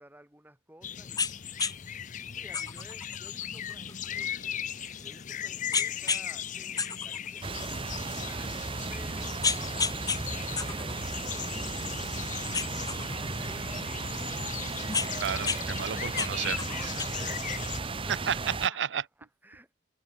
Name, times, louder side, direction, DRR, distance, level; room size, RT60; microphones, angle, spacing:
voice 1, 0.0-1.5 2.3-4.5 5.0-11.2 11.5-11.8 12.9-14.5 15.9-16.2 16.6-19.7, right 1 dB, 10° right, 6.2 m, -53 dB
sound 1, 0.8-17.8, left 9 dB, 45° left, 0.6 m, -38 dB
sound 2, 1.2-1.3 1.6-1.7 2.5-5.2 5.7-6.3 6.6-8.0 8.5-8.6 9.1-10.2 10.6-12.1 12.5-13.9 14.5-15.6 15.9-17.0, left 5 dB, 20° left, 2.8 m, -32 dB
sound 3, 7.4-18.7, right 3 dB, 30° right, 1.1 m, -35 dB
voice 2, 15.2-16.6 18.3-18.4 18.6-19.0, right 8 dB, 75° right, 0.5 m, -31 dB
head